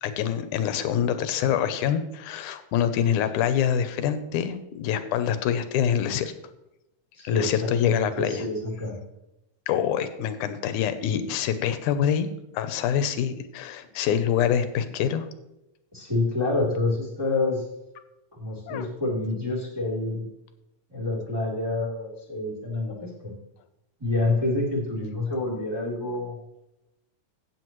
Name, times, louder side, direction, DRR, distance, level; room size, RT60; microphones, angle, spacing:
voice 1, 0.0-6.3 7.2-8.5 9.7-12.3 12.5-15.3 18.7-18.9, left 9 dB, 85° left, 10 dB, 2.2 m, -25 dB
voice 2, 7.2-8.9 15.9-17.6 18.4-20.2 20.9-23.3 24.0-26.3, left 2 dB, 10° right, -6 dB, 2.9 m, -27 dB
15.0 x 8.3 x 3.1 m, 0.91 s
omnidirectional pair, 3.5 m